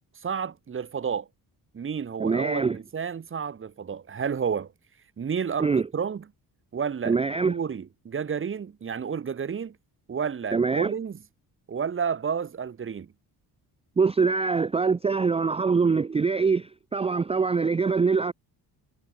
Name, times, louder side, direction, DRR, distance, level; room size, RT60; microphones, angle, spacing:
voice 1, 0.2-1.3 1.7-4.7 5.2-6.2 6.7-7.2 7.4-9.8 10.1-11.2 11.7-13.1, right 6 dB, 30° right, 1.0 m, -31 dB
voice 2, 2.2-2.8 5.6-5.9 7.0-7.5 10.5-10.9 14.0-18.3, right 4 dB, 15° right, 0.4 m, -24 dB
cardioid pair, 115°, 40 cm